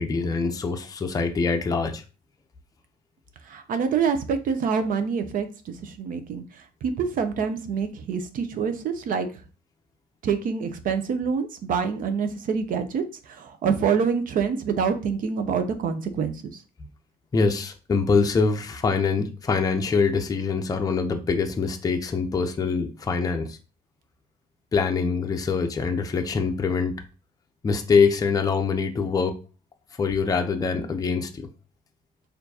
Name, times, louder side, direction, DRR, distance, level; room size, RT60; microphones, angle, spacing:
voice 1, 0.0-2.0 17.3-23.6 24.7-27.0 27.6-29.4 30.0-31.5, left 5 dB, 20° left, 0.5 m, -24 dB
voice 2, 3.5-6.4 6.8-9.3 10.2-13.0 13.3-16.3, right 6 dB, 55° right, 0.6 m, -26 dB
4.3 x 2.5 x 2.7 m
cardioid pair, 110°, 17 cm